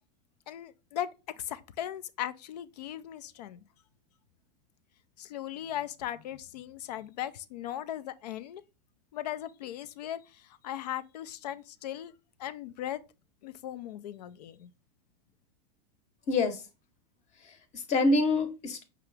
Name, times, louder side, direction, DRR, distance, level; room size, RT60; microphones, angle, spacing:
voice 1, 0.5-1.1 1.4-3.6 5.2-8.6 9.1-12.1 12.4-13.0 13.4-14.7, left 11 dB, 85° left, 0.5 m, -38 dB
voice 2, 16.3-16.6 17.4-18.8, left 2 dB, 35° left, 0.9 m, -26 dB
4.9 x 2.9 x 3.3 m
supercardioid pair, 125°, 20 cm